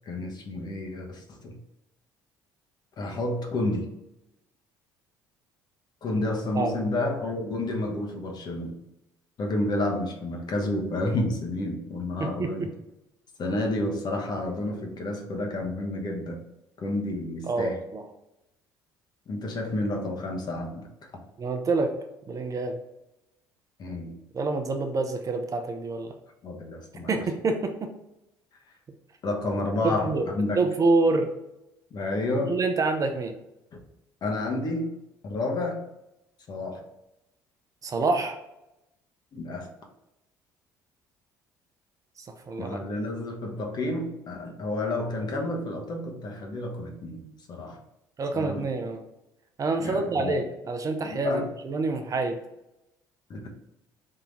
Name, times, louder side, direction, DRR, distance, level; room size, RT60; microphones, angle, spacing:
voice 1, 0.0-1.6 3.0-3.9 6.0-8.7 9.4-12.7 13.4-16.4 16.8-17.8 19.3-21.2 23.8-24.2 26.4-27.2 29.2-30.6 31.9-32.6 33.7-33.8 34.2-34.9 35.2-35.8 36.5-36.8 39.3-39.7 42.6-47.8 48.3-48.7 49.8-50.4 51.0-51.5 53.3-53.5, left 2 dB, 50° left, 1 dB, 1.0 m, -30 dB
voice 2, 12.2-12.7 17.5-18.0 21.4-21.9 22.3-22.8 24.3-26.1 27.1-27.9 29.8-30.3 30.6-31.3 32.5-33.3 37.8-38.4 42.2-42.9 48.2-49.0 49.6-52.4, right 3 dB, 40° right, 6 dB, 0.6 m, -27 dB
3.8 x 2.8 x 3.8 m, 0.90 s
hypercardioid pair, 65°, 9 cm